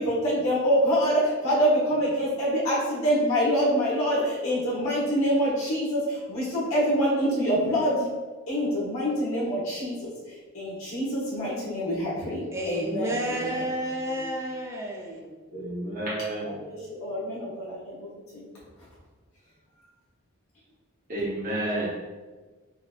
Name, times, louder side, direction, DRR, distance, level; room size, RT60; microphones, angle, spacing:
voice 1, 0.0-8.1 8.5-13.7 14.1-14.3 16.4-18.0 18.3-18.5, equal, 70° left, -7 dB, 1.1 m, -26 dB
voice 2, 12.5-15.3, equal, 15° right, -1 dB, 0.4 m, -31 dB
voice 3, 15.5-16.6 21.1-21.9, right 1 dB, 35° right, -9 dB, 0.8 m, -30 dB
3.9 x 2.8 x 2.4 m, 1.3 s
head